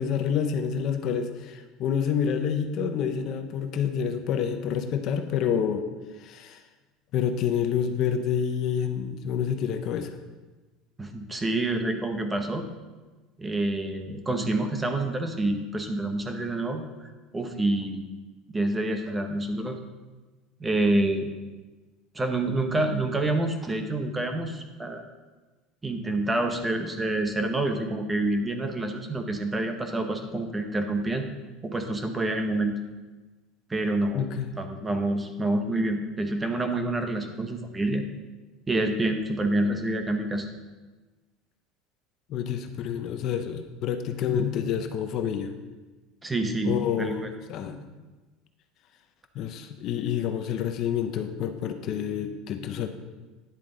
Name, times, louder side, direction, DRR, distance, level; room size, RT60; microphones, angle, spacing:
voice 1, 0.0-5.9 6.2-6.6 7.1-10.1 34.1-34.5 42.3-45.5 46.6-47.8 49.3-52.9, left 8 dB, 45° left, 7 dB, 0.7 m, -28 dB
voice 2, 11.0-12.7 13.4-18.0 18.5-19.8 20.6-21.3 22.1-25.0 25.8-31.3 31.6-32.8 33.7-34.3 34.6-38.0 38.7-40.5 46.2-47.3, right 2 dB, 10° right, 6 dB, 0.8 m, -27 dB
9.9 x 7.4 x 3.8 m, 1.2 s
cardioid pair, 150°, 0 cm